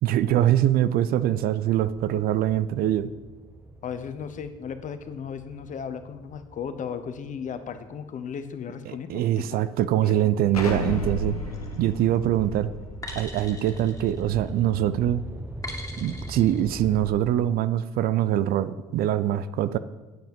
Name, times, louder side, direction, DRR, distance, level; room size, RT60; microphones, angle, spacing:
voice 1, 0.0-3.1 8.9-11.4 11.8-12.7 13.2-15.2 16.0-19.8, right 12 dB, 55° right, 14 dB, 0.5 m, -23 dB
sound 1, 2.3-8.5 9.1-17.1, right 1 dB, 10° right, 0.9 m, -42 dB
voice 2, 3.8-9.4 10.0-10.3 10.9-11.0, left 7 dB, 45° left, 10 dB, 0.9 m, -36 dB
Explosion, 10.5-15.2, left 1 dB, 90° left, 1.2 m, -34 dB
sound 2, 11.5-11.9 13.0-14.7 15.6-16.6, left 2 dB, 20° left, 2.5 m, -41 dB
9.1 x 7.8 x 5.3 m, 1.2 s
hypercardioid pair, 55°, 18 cm